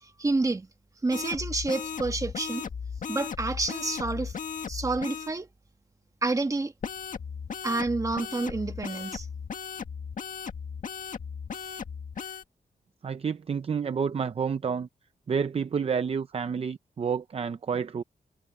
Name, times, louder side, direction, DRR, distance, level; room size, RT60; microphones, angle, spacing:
voice 1, 0.0-0.7 1.0-2.7 3.1-4.4 4.7-5.5 6.2-6.7 7.6-9.3, right 3 dB, 20° right, 1.4 m, -29 dB
sound 1, 1.1-5.3 6.8-12.4, left 6 dB, 55° left, 1.8 m, -36 dB
voice 2, 13.0-14.9 15.3-18.0, right 6 dB, 40° right, 0.6 m, -29 dB
wide cardioid pair, 145°, 16 cm